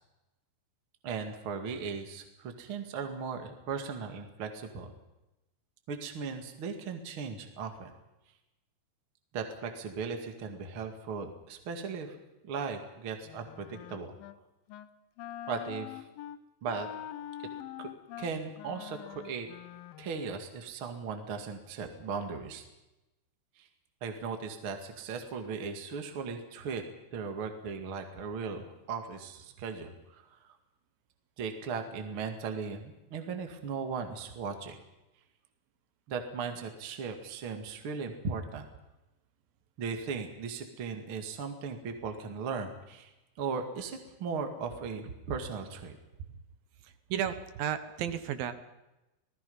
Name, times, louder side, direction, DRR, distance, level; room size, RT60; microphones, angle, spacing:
voice 1, 1.0-4.9 5.9-7.9 9.3-12.2 12.4-14.2 15.5-16.1 16.6-16.9 17.8-17.9 18.2-19.5 20.0-22.6 23.6-23.7 24.0-26.8 27.1-30.5 31.4-34.8 36.1-38.7 39.8-43.1 43.4-46.0, right 5 dB, 40° right, 5 dB, 2.4 m, -37 dB
Wind instrument woodwind instrument, 13.2-14.4 14.7-14.9 15.2-20.5, left 11 dB, 75° left, 2.4 m, -44 dB
voice 2, 46.8-48.5, right 9 dB, 70° right, 11 dB, 2.9 m, -33 dB
27.5 x 19.0 x 5.6 m, 0.97 s
omnidirectional pair, 4.6 m